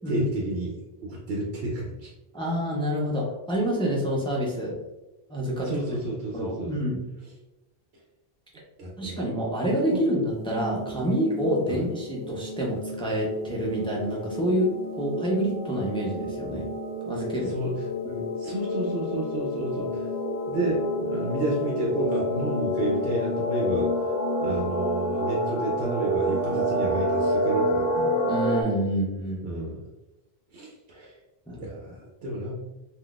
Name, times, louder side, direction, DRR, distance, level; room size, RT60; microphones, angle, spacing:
voice 1, 0.1-2.1 5.6-6.7 8.8-9.2 9.9-10.0 11.7-11.8 17.4-17.9 18.4-20.1 20.5-23.9 24.4-28.1 29.4-29.8 30.5-31.2 31.6-32.6, right 2 dB, 80° right, -3 dB, 0.9 m, -31 dB
voice 2, 2.3-4.8 5.3-5.7 6.3-7.1 9.0-16.7 17.1-17.5 18.1-18.3 28.3-29.5 30.9-31.1 31.5-31.7, equal, 5° left, -3 dB, 0.4 m, -27 dB
sound 1, 10.3-28.6, left 1 dB, 45° left, 0.9 m, -29 dB
3.7 x 2.3 x 2.4 m, 1.0 s
omnidirectional pair, 1.1 m